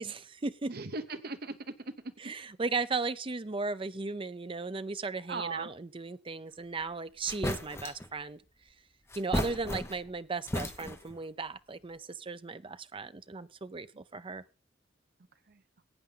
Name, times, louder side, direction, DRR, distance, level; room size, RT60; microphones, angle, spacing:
voice 1, 0.0-0.7 2.2-8.4 9.2-14.4, right 4 dB, 30° right, 13 dB, 0.6 m, -36 dB
voice 2, 0.7-2.1 5.3-5.7 9.3-9.6 13.9-14.0 15.3-15.6, right 3 dB, 55° right, 11 dB, 0.9 m, -39 dB
sound 1, 6.8-6.9 7.3-8.1 9.1-10.2 10.5-11.2, left 1 dB, 15° left, 1.0 m, -34 dB
15.0 x 8.8 x 3.9 m, 0.35 s
head